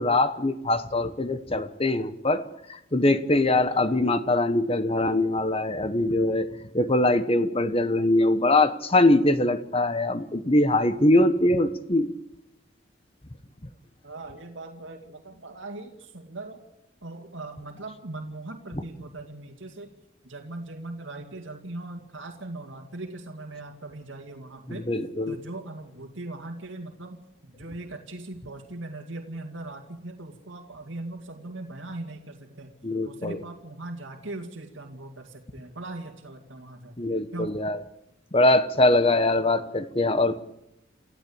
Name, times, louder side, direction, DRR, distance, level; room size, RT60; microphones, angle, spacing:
voice 1, 0.0-12.1 24.7-25.4 32.8-33.4 37.0-37.8 38.3-40.4, left 2 dB, 30° left, 12 dB, 1.1 m, -22 dB
voice 2, 3.7-4.1 14.0-16.6 17.0-19.9 20.2-24.9 25.3-32.7 33.0-37.0 37.3-37.6, right 2 dB, 80° right, 3 dB, 2.3 m, -40 dB
28.5 x 15.0 x 8.6 m, 0.82 s
head